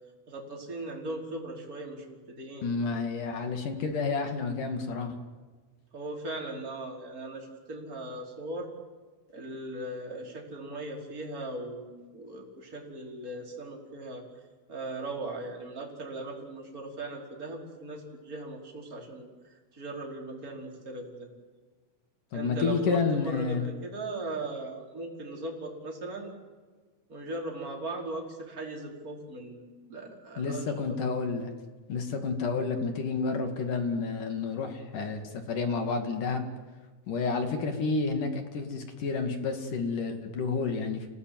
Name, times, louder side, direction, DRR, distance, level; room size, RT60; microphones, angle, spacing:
voice 1, 0.3-2.7 5.9-8.7 9.3-14.2 14.7-19.3 19.7-21.3 22.3-26.3 27.1-30.7, right 2 dB, 20° right, -1 dB, 4.7 m, -38 dB
voice 2, 2.6-5.1 22.3-23.7 30.4-31.5 31.9-36.5 37.1-41.1, left 4 dB, 50° left, 6 dB, 3.3 m, -30 dB
29.5 x 19.0 x 9.5 m, 1.4 s
omnidirectional pair, 5.8 m